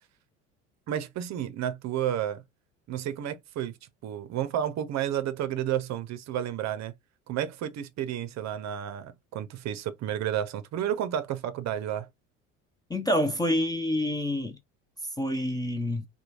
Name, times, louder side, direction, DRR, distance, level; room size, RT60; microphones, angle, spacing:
voice 1, 0.9-2.4 2.9-3.8 4.0-6.9 7.3-12.1, right 10 dB, 45° right, 0.6 m, -31 dB
voice 2, 12.9-14.6 15.2-16.1, left 1 dB, 10° left, 0.5 m, -27 dB
3.0 x 2.2 x 2.4 m
hypercardioid pair, 75°, 38 cm